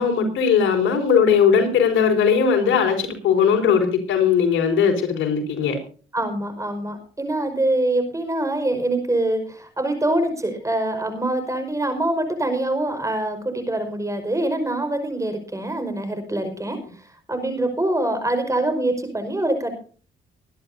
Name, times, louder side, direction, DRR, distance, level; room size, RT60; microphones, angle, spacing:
voice 1, 0.0-5.8, left 6 dB, 80° left, 3 dB, 4.9 m, -19 dB
voice 2, 6.1-16.8 17.3-19.8, right 1 dB, 15° right, 8 dB, 5.1 m, -24 dB
23.5 x 11.5 x 2.7 m, 0.41 s
cardioid pair, 90°, 20 cm